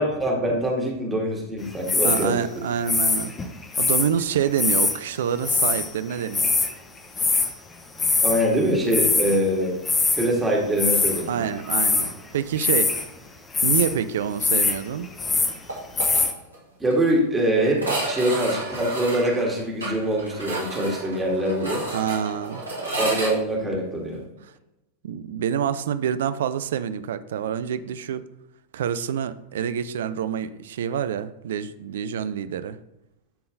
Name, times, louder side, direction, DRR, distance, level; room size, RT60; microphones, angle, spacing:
voice 1, 0.0-2.3 8.2-9.8 10.1-11.5 16.8-21.8 23.0-24.2, right 1 dB, 10° right, -2 dB, 2.0 m, -24 dB
sound 1, 1.9-2.3 2.9-4.1 4.6-5.0 5.4-5.9 6.1-6.7 7.2-7.5 8.0-8.5 8.8-9.4 9.9-10.3 10.8-11.2 11.6-12.1 12.6-13.1 13.5-13.9 14.4-14.8 15.0-15.6 16.0-16.3, left 4 dB, 15° left, 0.9 m, -22 dB
voice 2, 2.0-3.4 3.8-6.5 11.3-12.9 13.6-15.1 21.9-22.6 25.0-28.2 28.7-32.8, right 8 dB, 60° right, 12 dB, 0.4 m, -27 dB
sound 2, 15.7-16.2 16.5-16.6 16.9-17.0 17.7-23.3, right 2 dB, 80° right, 2.3 m, -31 dB
11.0 x 3.8 x 3.9 m, 0.91 s
figure-of-eight pair, 90°, 0 cm